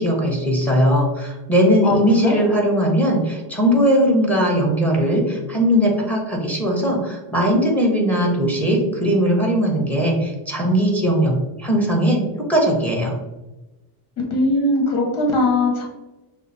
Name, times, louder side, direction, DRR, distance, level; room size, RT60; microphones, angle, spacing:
voice 1, 0.0-11.3 11.6-12.2 12.5-13.1, equal, 5° left, -1 dB, 1.1 m, -19 dB
voice 2, 14.3-15.8, left 2 dB, 55° left, 0 dB, 1.4 m, -19 dB
5.8 x 2.1 x 4.2 m, 1.1 s
cardioid pair, 115°, 48 cm